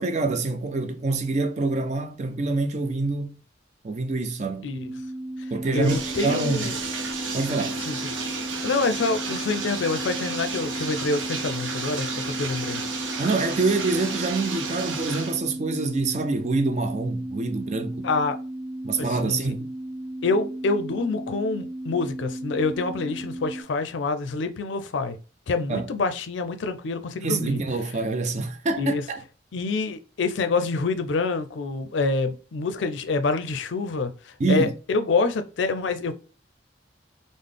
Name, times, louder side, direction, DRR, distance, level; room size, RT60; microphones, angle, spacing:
voice 1, 0.0-3.4 3.8-4.6 5.5-6.7 7.3-7.8 13.2-18.1 18.8-19.7 25.7-25.9 27.2-29.2 34.4-34.7, right 3 dB, 35° right, 0.4 m, -26 dB
sound 1, 4.7-23.6, right 1 dB, 10° left, 0.8 m, -35 dB
Bathtub (filling or washing), 5.6-15.4, right 4 dB, 85° right, 0.7 m, -32 dB
voice 2, 5.7-6.8 7.9-8.0 8.6-12.8 18.0-18.4 19.0-19.4 20.2-25.2 25.5-27.6 28.8-29.0 29.5-36.1, left 3 dB, 75° left, 0.4 m, -26 dB
3.8 x 2.0 x 3.3 m
head